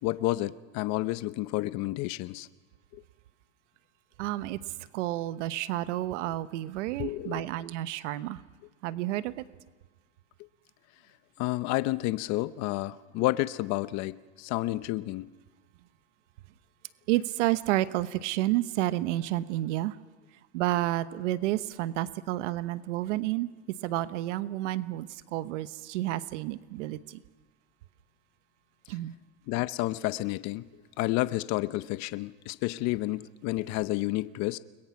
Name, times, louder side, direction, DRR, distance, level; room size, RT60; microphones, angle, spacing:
voice 1, 0.0-2.5 2.9-3.0 7.0-7.4 11.4-15.3 29.5-30.7 31.0-34.6, left 18 dB, 50° left, 0.8 m, -30 dB
voice 2, 4.2-4.6 4.9-8.4 8.8-9.4 17.1-19.9 20.5-23.5 23.8-27.0 28.9-29.1, right 15 dB, 85° right, 1.0 m, -30 dB
30.0 x 21.5 x 6.0 m
supercardioid pair, 140°, 35 cm